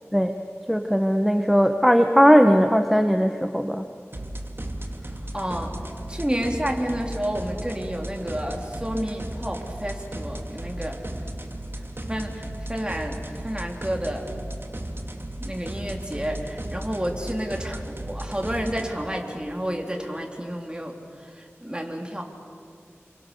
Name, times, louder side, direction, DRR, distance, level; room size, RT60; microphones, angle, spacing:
voice 1, 0.7-3.8, equal, ahead, 6 dB, 1.2 m, -18 dB
sound 1, 4.1-18.9, right 1 dB, 50° right, 2.5 m, -35 dB
voice 2, 5.3-5.7 6.1-11.0 12.1-14.3 15.4-22.2, equal, 20° right, 2 dB, 3.5 m, -30 dB
28.5 x 24.0 x 7.0 m, 2.3 s
wide cardioid pair, 45°, 5 cm